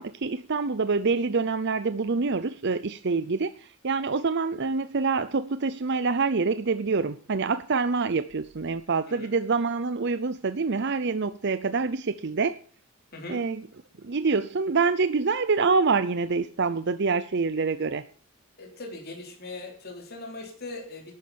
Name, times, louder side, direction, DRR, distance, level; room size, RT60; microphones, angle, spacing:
voice 1, 0.0-12.6 13.3-13.6 14.0-18.0, right 4 dB, 50° right, 12 dB, 0.6 m, -26 dB
voice 2, 13.1-13.4 18.6-21.2, left 2 dB, 45° left, 1 dB, 3.5 m, -40 dB
12.0 x 9.7 x 6.9 m, 0.43 s
head